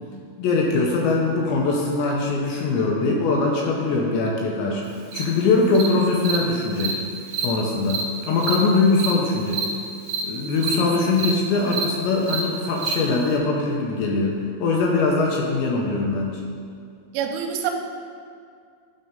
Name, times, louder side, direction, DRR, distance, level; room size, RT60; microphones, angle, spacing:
voice 1, 0.4-4.8 5.1-7.0 7.4-9.6 10.2-16.4, left 3 dB, 80° left, -1 dB, 2.7 m, -22 dB
Cricket, 5.1-5.2 5.7-5.9 6.2-6.4 6.8-6.9 7.3-7.5 7.9-8.0 8.4-8.6 9.0-9.1 9.5-9.6 10.1-10.2 10.6-10.7 11.2-11.3 11.7-11.8 12.3-12.4 12.8-12.9, right 7 dB, 70° right, 2.8 m, -26 dB
voice 2, 17.1-17.7, right 8 dB, 85° right, 3 dB, 3.0 m, -25 dB
12.5 x 4.4 x 5.1 m, 2.2 s
omnidirectional pair, 5.7 m